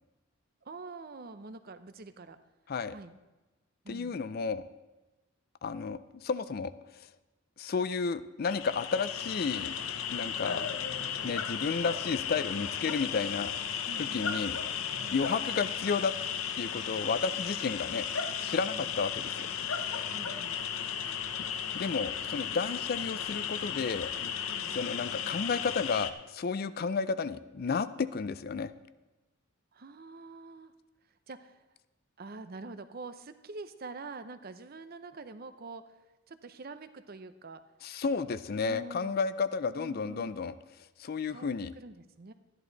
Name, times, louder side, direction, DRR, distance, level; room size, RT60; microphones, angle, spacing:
voice 1, 0.6-2.4 2.9-3.1 3.8-4.2 13.8-14.3 15.0-15.2 18.7-18.9 20.1-20.6 24.5-24.7 29.7-30.7 31.3-31.7 32.2-35.9 36.3-37.6 38.6-39.2 39.8-40.3 41.3-42.3, right 3 dB, 45° right, 11 dB, 0.6 m, -46 dB
voice 2, 3.9-4.6 5.6-6.7 7.6-9.8 10.1-10.7 11.2-14.6 15.1-16.1 16.6-18.1 18.4-19.5 21.7-24.1 24.7-28.7 37.8-40.5 41.0-41.7, left 5 dB, 50° left, 14 dB, 0.4 m, -32 dB
sound 1, 8.4-26.1, left 8 dB, 85° left, 0.7 m, -35 dB
13.0 x 11.0 x 4.0 m, 1.1 s
head